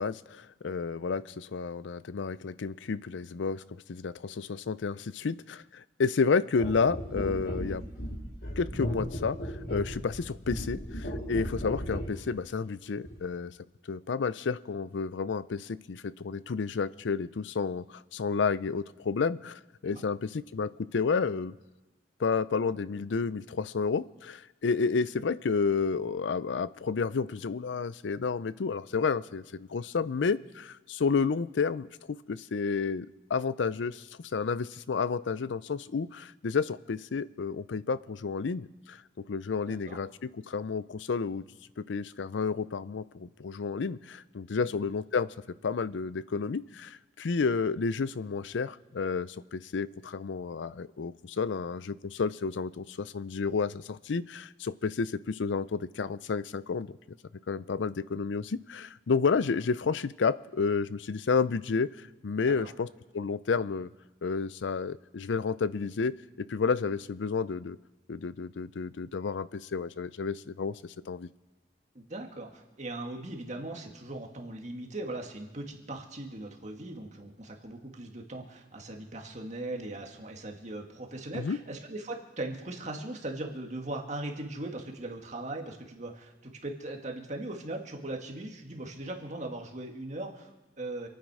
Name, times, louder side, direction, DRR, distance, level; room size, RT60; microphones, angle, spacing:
voice 1, 0.0-3.6 3.9-7.8 8.6-13.5 13.9-21.6 22.2-31.9 32.3-34.1 34.3-39.0 39.3-41.4 41.8-45.3 45.6-57.0 57.5-61.9 62.2-62.9 63.1-63.9 64.2-67.8 68.1-71.3 81.3-81.6, left 5 dB, 85° left, 17 dB, 0.5 m, -31 dB
sound 1, 6.6-12.2 13.0-13.2, equal, 60° left, 3.7 m, -36 dB
voice 2, 39.7-40.0 62.6-62.7 72.0-91.1, right 2 dB, 40° right, 2 dB, 1.9 m, -39 dB
27.0 x 9.5 x 4.9 m, 1.1 s
head